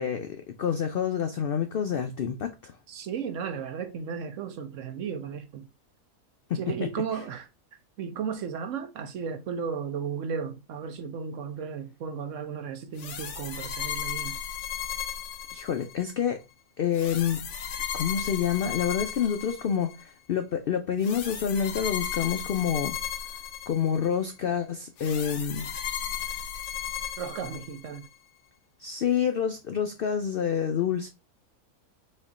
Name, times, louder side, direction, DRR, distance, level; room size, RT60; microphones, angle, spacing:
voice 1, 0.0-2.8 6.5-6.6 15.5-16.4 16.8-17.4 17.9-23.0 23.7-25.7 28.8-31.1, left 8 dB, 80° left, 0.5 m, -28 dB
voice 2, 2.9-5.7 6.5-7.5 8.0-14.4 27.2-28.1, right 7 dB, 65° right, 0.9 m, -34 dB
sound 1, 13.0-16.1 16.9-20.0 21.0-24.2 25.0-28.1, left 8 dB, 60° left, 0.9 m, -35 dB
4.3 x 2.9 x 3.6 m
omnidirectional pair, 1.5 m